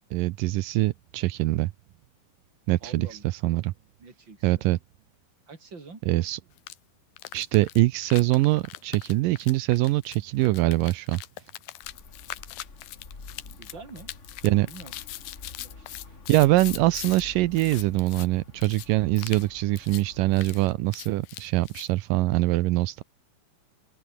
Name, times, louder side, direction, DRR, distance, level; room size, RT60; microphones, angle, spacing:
voice 1, 0.1-1.7 2.7-3.7 4.4-4.8 6.1-6.4 7.3-11.2 14.4-14.7 16.3-23.0, right 18 dB, 80° right, 2.0 m, -23 dB
voice 2, 2.8-3.3 4.0-4.7 5.5-6.0 13.5-14.1 14.7-14.9 15.6-15.9, right 4 dB, 30° right, 4.9 m, -46 dB
sound 1, 6.6-6.8 7.2-17.2 17.5-18.3 18.6-18.9 19.2-19.5 19.8-20.0 20.3-21.9, left 15 dB, 70° left, 2.7 m, -41 dB
sound 2, 11.8-20.7, left 3 dB, 20° left, 2.3 m, -48 dB
omnidirectional pair, 4.6 m